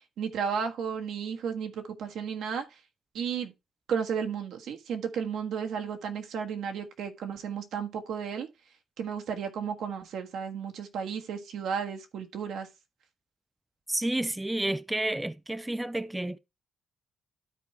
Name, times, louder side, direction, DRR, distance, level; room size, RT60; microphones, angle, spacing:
voice 1, 0.2-2.8 3.1-3.5 3.9-8.5 9.0-12.7, right 7 dB, 75° right, 1.4 m, -33 dB
voice 2, 13.9-16.4, right 1 dB, 10° right, 0.3 m, -30 dB
12.5 x 4.6 x 3.2 m
cardioid pair, 145°, 0 cm